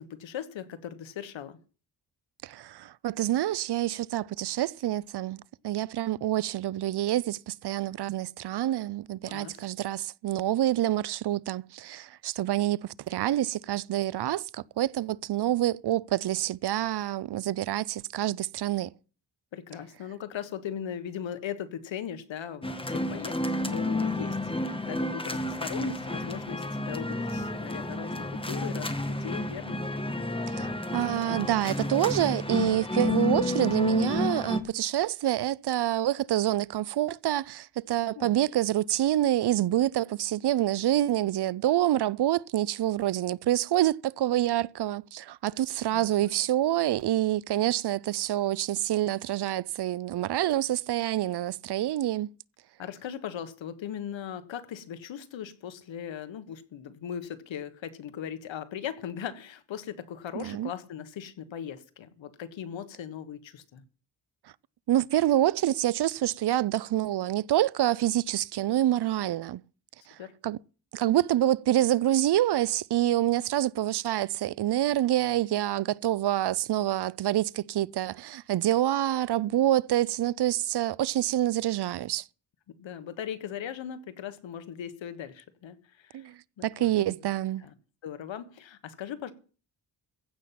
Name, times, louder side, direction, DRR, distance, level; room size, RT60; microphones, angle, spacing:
voice 1, 0.0-1.6 9.3-9.7 19.5-29.8 38.1-38.3 45.9-46.3 52.8-63.8 70.2-70.3 82.7-86.3 86.6-86.9 87.6-87.7 88.0-89.3, left 9 dB, 90° left, 1.5 m, -39 dB
voice 2, 2.4-18.9 30.5-52.3 60.3-60.7 64.9-69.6 70.4-70.6 70.9-82.2 86.1-86.3 86.6-87.6, right 13 dB, 60° right, 0.6 m, -27 dB
sound 1, 22.6-34.6, left 2 dB, 10° left, 1.7 m, -30 dB
15.5 x 5.7 x 8.7 m
cardioid pair, 80°, 44 cm